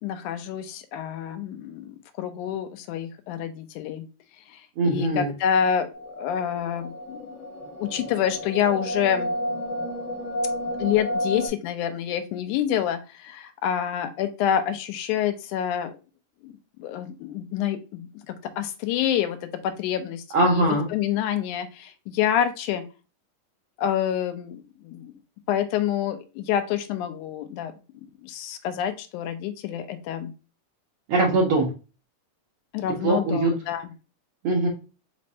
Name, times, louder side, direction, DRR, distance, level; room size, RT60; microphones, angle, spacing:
voice 1, 0.0-4.1 4.5-5.9 6.2-7.3 7.8-9.3 10.8-15.9 16.4-16.5 16.8-19.4 19.6-22.8 23.8-25.1 25.5-30.3 32.7-33.9, left 9 dB, 80° left, 9 dB, 2.0 m, -27 dB
voice 2, 4.8-5.3 20.3-20.9 31.1-31.7 33.0-33.5 34.4-34.7, right 2 dB, 80° right, -2 dB, 1.2 m, -21 dB
sound 1, 5.9-11.5, equal, 30° left, 1.7 m, -31 dB
5.3 x 3.1 x 2.7 m, 0.31 s
omnidirectional pair, 3.8 m